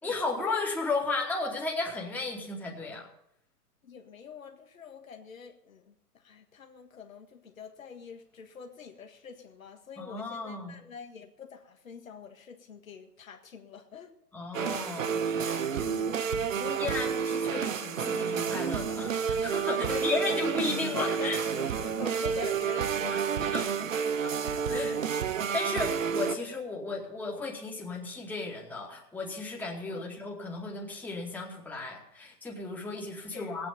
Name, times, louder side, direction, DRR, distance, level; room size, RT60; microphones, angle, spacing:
voice 1, 0.0-3.1 10.0-10.8 14.3-15.8 16.6-21.4 23.1-23.2 23.5-23.6 24.2-24.3 24.7-24.9 25.5-33.7, left 3 dB, 5° left, -3 dB, 2.5 m, -34 dB
voice 2, 3.8-5.9 6.2-14.1 15.8-16.1 16.4-16.9 19.6-23.9 24.6-25.2 29.9-30.1 33.3-33.6, left 7 dB, 55° left, 4 dB, 1.8 m, -45 dB
sound 1, 14.5-26.3, right 7 dB, 55° right, 1.1 m, -30 dB
18.5 x 9.0 x 6.9 m, 0.76 s
figure-of-eight pair, 120°, 47 cm